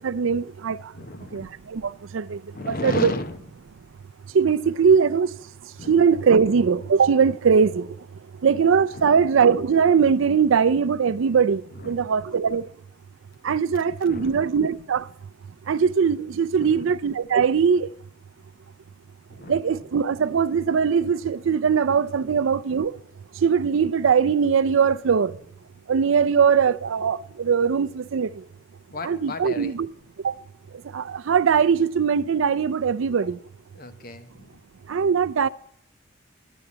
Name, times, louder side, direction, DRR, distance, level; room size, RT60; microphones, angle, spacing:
voice 1, 0.0-0.9 1.3-3.1 4.3-5.3 5.6-8.0 8.4-12.7 13.4-15.1 15.7-17.9 19.5-23.0 23.3-25.3 25.9-28.4 29.0-29.9 30.2-30.3 30.9-33.4 34.9-35.5, right 6 dB, 80° right, 0.4 m, -21 dB
voice 2, 0.9-1.5 2.5-3.4 5.8-5.9 8.9-9.1 11.7-12.1 14.1-14.4 16.6-16.8 19.3-19.5 22.2-22.3 28.9-29.7 33.7-34.6, left 2 dB, 45° left, 0.8 m, -34 dB
10.0 x 7.9 x 8.4 m
head